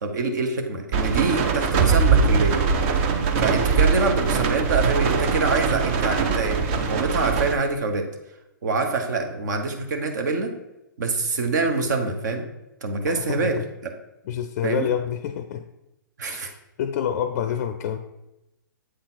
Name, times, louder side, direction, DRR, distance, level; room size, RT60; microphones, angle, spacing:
voice 1, 0.0-2.6 3.4-8.1 8.6-10.5 11.0-12.4 12.8-13.9 14.6-14.9 16.2-16.5, right 3 dB, 60° right, 5 dB, 1.1 m, -25 dB
sound 1, 0.9-7.5, right 5 dB, 40° right, 0.7 m, -22 dB
voice 2, 13.1-13.6 14.2-15.7 16.3-18.0, left 9 dB, 45° left, 10 dB, 0.4 m, -28 dB
7.8 x 4.0 x 4.0 m, 0.95 s
hypercardioid pair, 125°, 11 cm